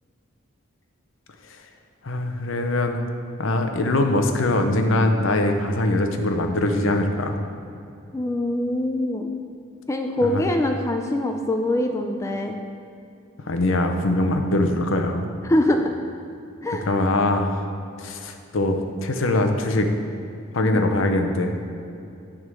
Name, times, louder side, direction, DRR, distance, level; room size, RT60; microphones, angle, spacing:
voice 1, 2.0-3.0 3.4-7.4 10.2-10.4 13.4-15.3 16.9-17.6 18.0-19.9 20.5-21.6, left 2 dB, 70° left, 5 dB, 0.7 m, -22 dB
voice 2, 8.1-9.3 9.9-12.6 15.4-15.9 16.6-16.9 20.6-20.8, left 1 dB, 15° left, 4 dB, 0.3 m, -23 dB
9.5 x 3.7 x 6.2 m, 2.6 s
head